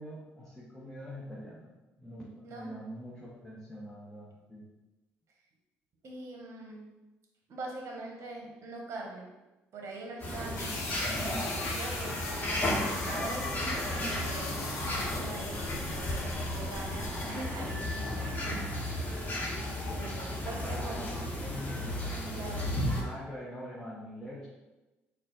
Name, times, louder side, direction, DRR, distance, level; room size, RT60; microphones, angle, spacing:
voice 1, 0.0-1.7 2.0-4.7 20.6-22.5 22.9-24.5, equal, 5° left, -6 dB, 1.0 m, -44 dB
voice 2, 6.0-6.9 7.5-9.3 9.7-10.9 11.4-13.5 13.8-14.3 14.9-18.4 19.9-21.2 22.3-22.7, right 2 dB, 55° right, 0 dB, 0.9 m, -43 dB
sound 1, 10.2-23.0, left 1 dB, 30° left, 1.2 m, -34 dB
sound 2, 10.6-17.3, left 3 dB, 60° left, 0.9 m, -40 dB
4.0 x 2.3 x 3.8 m, 1.1 s
hypercardioid pair, 55°, 6 cm